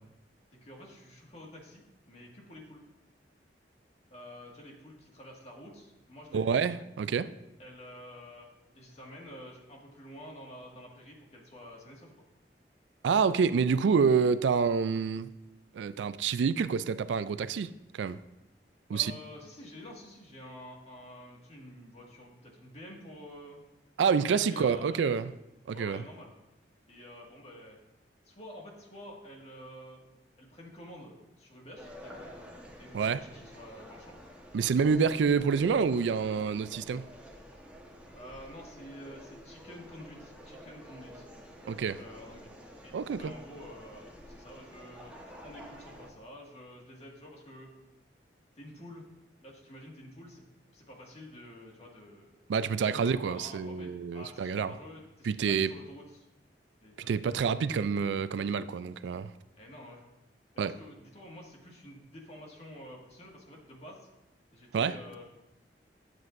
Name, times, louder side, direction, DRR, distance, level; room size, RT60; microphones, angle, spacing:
voice 1, 0.6-2.8 4.1-6.6 7.6-8.5 8.8-12.1 13.5-14.1 18.9-23.6 24.3-25.1 25.7-26.3 26.9-27.8 28.2-30.0 30.4-32.4 32.8-34.2 35.0-35.7 38.1-41.3 42.0-42.5 42.8-47.7 48.6-49.1 49.4-50.4 50.7-52.5 52.9-56.3 56.8-57.5 59.6-60.0 60.5-64.1 64.5-65.3, equal, 40° left, -1 dB, 1.8 m, -49 dB
voice 2, 6.3-7.3 13.0-15.3 15.7-18.2 18.9-19.1 24.0-25.3 25.7-26.0 32.9-33.2 34.5-37.1 41.7-42.0 42.9-43.3 52.5-54.7 55.2-55.7 57.1-59.3 60.6-60.7 64.7-64.9, right 6 dB, 85° right, 15 dB, 0.3 m, -27 dB
sound 1, 31.8-46.1, equal, 10° right, 1.2 m, -50 dB
12.0 x 7.5 x 2.6 m, 0.95 s
head